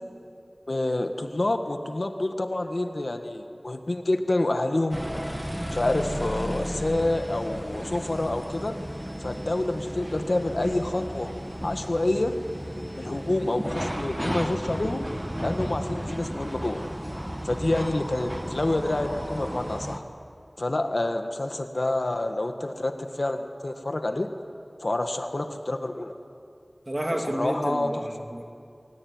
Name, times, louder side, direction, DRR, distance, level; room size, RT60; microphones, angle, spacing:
voice 1, 0.7-5.0 5.7-8.7 9.2-11.3 11.6-12.3 13.0-15.0 15.4-16.8 17.4-20.0 20.6-24.3 24.8-26.1 27.2-27.9, left 2 dB, 70° left, 6 dB, 1.5 m, -28 dB
sound 1, 4.9-20.0, equal, 15° right, 1.6 m, -34 dB
voice 2, 26.9-28.6, right 1 dB, 40° right, 2 dB, 2.8 m, -31 dB
22.0 x 17.5 x 9.6 m, 2.4 s
wide cardioid pair, 40°, 0 cm